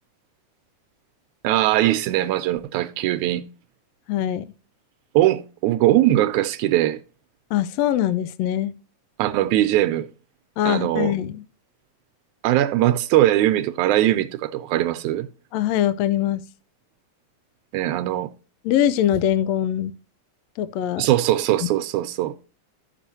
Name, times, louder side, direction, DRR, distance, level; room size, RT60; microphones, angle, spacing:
voice 1, 1.4-3.4 5.2-7.0 9.2-10.1 10.7-11.1 12.4-15.3 17.7-18.3 21.0-22.3, right 14 dB, 80° right, 1.8 m, -20 dB
voice 2, 4.1-4.5 7.5-8.7 10.6-11.4 15.5-16.4 18.6-19.9 20.6-21.1 21.6-21.7, left 11 dB, 85° left, 1.4 m, -22 dB
12.5 x 6.7 x 2.7 m
omnidirectional pair, 3.6 m